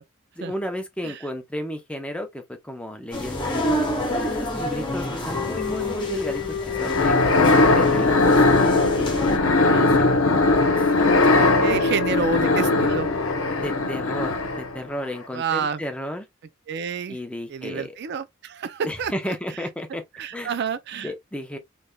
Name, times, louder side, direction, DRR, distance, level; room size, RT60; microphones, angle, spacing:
voice 1, 0.4-7.2 7.7-8.6 9.7-10.2 11.0-11.1 11.7-11.8 13.6-16.3 17.1-18.0 18.8-20.0 20.3-20.5 20.9-21.6, equal, 5° left, 0.7 m, -33 dB
sound 1, 3.1-9.4, equal, 25° left, 1.4 m, -29 dB
sound 2, 5.3-14.5, left 6 dB, 60° left, 0.3 m, -31 dB
sound 3, 6.8-14.8, left 2 dB, 80° left, 0.8 m, -19 dB
voice 2, 11.6-13.1 15.3-15.8 16.7-17.2 17.5-19.1 20.2-21.1, right 6 dB, 55° right, 0.4 m, -29 dB
4.1 x 3.2 x 2.2 m
head